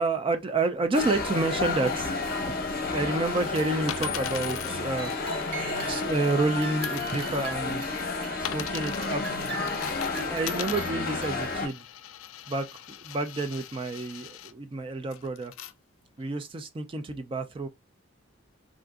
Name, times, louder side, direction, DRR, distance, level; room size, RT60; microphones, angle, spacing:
voice 1, 0.0-2.1 2.5-2.6 2.9-5.1 5.8-7.8 8.4-9.4 9.7-11.8 12.5-15.5 16.2-17.7, right 2 dB, 25° right, 0.4 m, -29 dB
sound 1, 0.9-11.7, left 3 dB, 50° left, 0.7 m, -31 dB
sound 2, 3.2-6.5 6.8-14.5 15.1-15.7 16.3-16.4, left 12 dB, 75° left, 0.3 m, -41 dB
sound 3, 4.7-6.2 6.6-8.6 9.0-11.7, right 4 dB, 55° right, 1.5 m, -42 dB
3.7 x 2.5 x 2.3 m
head